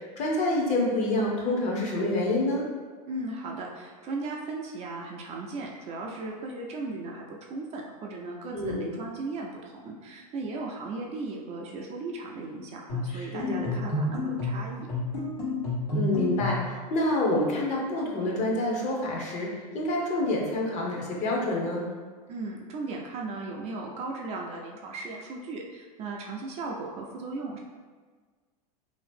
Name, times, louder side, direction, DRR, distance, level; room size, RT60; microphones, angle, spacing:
voice 1, 0.2-2.7 8.5-8.9 13.1-13.7 15.9-21.9, left 1 dB, 35° left, -2 dB, 0.8 m, -27 dB
voice 2, 3.1-14.9 22.3-27.6, right 3 dB, 35° right, -1 dB, 0.4 m, -37 dB
sound 1, 12.9-16.7, left 2 dB, 80° left, 1.4 m, -30 dB
2.7 x 2.5 x 3.4 m, 1.5 s
supercardioid pair, 120°, 20 cm